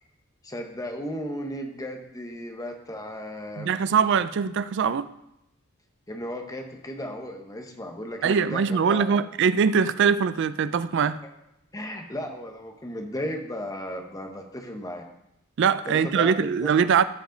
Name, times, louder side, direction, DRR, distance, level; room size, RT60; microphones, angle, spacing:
voice 1, 0.4-3.7 6.1-9.2 11.7-15.0 15.9-16.8, equal, 15° left, 3 dB, 0.9 m, -35 dB
voice 2, 3.6-5.1 8.2-11.2 15.6-17.0, right 6 dB, 55° right, 14 dB, 0.4 m, -22 dB
14.0 x 5.1 x 3.9 m, 0.85 s
head